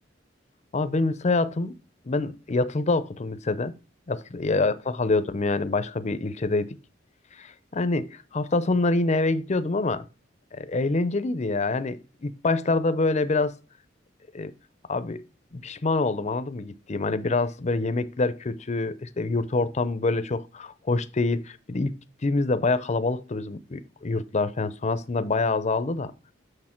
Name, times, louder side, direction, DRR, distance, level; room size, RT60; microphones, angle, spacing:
voice 1, 0.7-1.7 2.1-3.7 4.1-6.7 7.4-10.0 10.5-13.5 14.3-14.5 14.9-15.2 15.5-21.9 22.2-26.1, left 3 dB, 40° left, 0.6 m, -26 dB
8.6 x 6.4 x 4.4 m
head